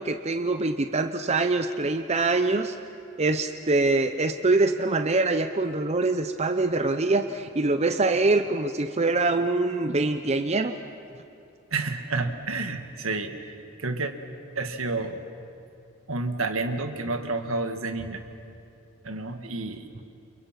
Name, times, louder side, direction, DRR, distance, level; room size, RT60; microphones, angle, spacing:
voice 1, 0.0-2.8 3.2-10.7, right 3 dB, 30° right, 8 dB, 0.7 m, -24 dB
voice 2, 11.7-14.1 14.6-15.2 16.1-18.2 19.0-19.9, right 3 dB, 75° right, 7 dB, 1.8 m, -30 dB
29.5 x 27.5 x 5.9 m, 2.7 s
head